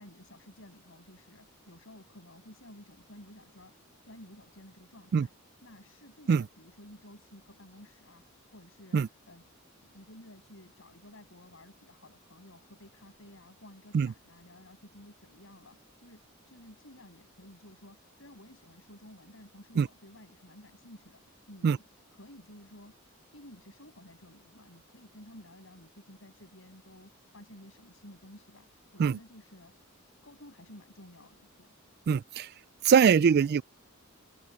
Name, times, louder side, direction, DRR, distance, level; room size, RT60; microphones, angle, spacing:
voice 1, 0.0-3.7 4.0-5.3 5.6-9.4 9.8-21.8 22.1-23.0 23.3-29.7 30.2-31.7, left 1 dB, 65° left, 8.0 m, -53 dB
voice 2, 32.1-32.5 32.8-33.6, right 6 dB, 50° right, 0.3 m, -22 dB
open air
head